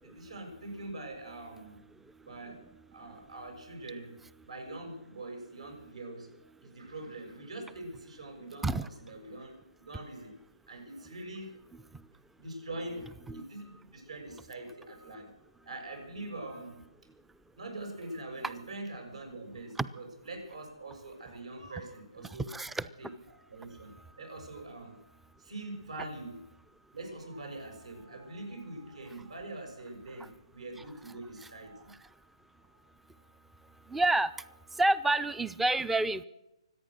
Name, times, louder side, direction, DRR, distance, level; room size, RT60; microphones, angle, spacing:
voice 1, 0.0-1.8 2.2-2.7 2.9-4.2 4.4-10.4 10.7-11.6 12.4-15.3 15.6-16.9 17.6-22.5 23.0-25.0 25.4-26.4 26.9-32.1 32.6-32.8, right 2 dB, 80° right, 3 dB, 6.9 m, -44 dB
voice 2, 22.5-22.8 33.9-34.3 34.8-36.2, right 2 dB, 5° right, 18 dB, 0.4 m, -28 dB
24.5 x 9.1 x 6.4 m, 0.96 s
figure-of-eight pair, 145°, 3 cm